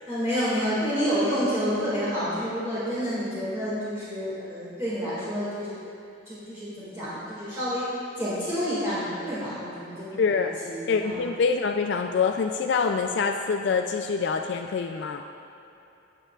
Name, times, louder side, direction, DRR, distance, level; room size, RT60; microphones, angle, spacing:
voice 1, 0.1-5.8 6.3-11.2, equal, 15° right, -12 dB, 1.9 m, -29 dB
voice 2, 10.2-10.5 10.9-15.2, left 5 dB, 60° left, 4 dB, 0.3 m, -25 dB
17.5 x 6.8 x 2.4 m, 2.8 s
head